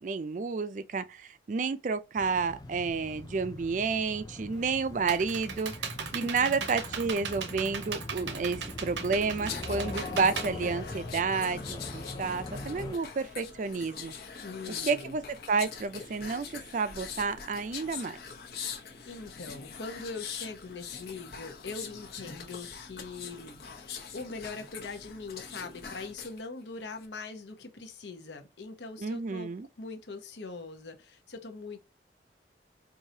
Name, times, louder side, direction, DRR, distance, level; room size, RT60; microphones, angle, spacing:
voice 1, 0.0-5.7 6.1-14.1 14.8-15.2 15.5-18.2 29.0-29.7, right 4 dB, 45° right, 0.3 m, -30 dB
sound 1, 2.2-13.0, left 1 dB, 20° left, 0.4 m, -42 dB
Computer keyboard, 4.5-11.4, right 6 dB, 85° right, 0.7 m, -38 dB
sound 2, 9.4-26.4 26.8-27.1, left 6 dB, 60° left, 0.9 m, -42 dB
voice 2, 14.4-15.1 18.6-31.8, left 3 dB, 90° left, 0.9 m, -42 dB
4.7 x 2.6 x 2.7 m
head